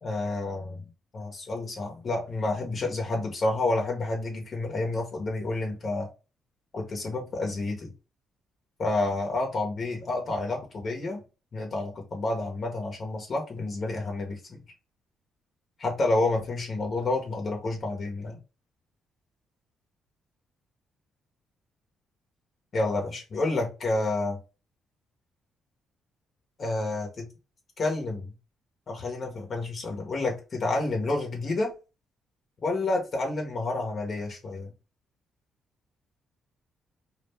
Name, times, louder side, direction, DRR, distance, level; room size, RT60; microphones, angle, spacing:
voice 1, 0.0-0.8 1.1-6.1 6.7-7.9 8.8-11.2 11.5-14.6 15.8-18.4 22.7-24.4 26.6-27.3 27.8-28.3 28.9-31.7 32.6-34.7, left 2 dB, 45° left, 1 dB, 0.8 m, -29 dB
2.4 x 2.1 x 3.3 m, 0.31 s
cardioid pair, 90°, 0 cm